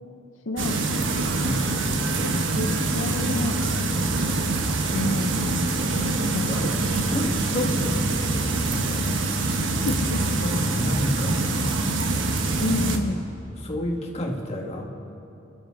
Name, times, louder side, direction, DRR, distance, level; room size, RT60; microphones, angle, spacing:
voice 1, 0.5-1.4 2.2-2.3 2.6-3.8 4.9-5.4 6.3-6.8 9.9-10.3 11.2-11.3 12.6-13.2, left 2 dB, 75° left, 5 dB, 0.7 m, -30 dB
sound 1, 0.6-13.0, right 2 dB, 75° right, 1.2 m, -25 dB
voice 2, 1.4-2.0 2.3-2.6 5.4-5.8 6.2-9.8 10.4-11.6 12.7-13.0 13.6-14.9, equal, 35° left, 0 dB, 1.9 m, -31 dB
28.0 x 11.5 x 3.9 m, 2.8 s
head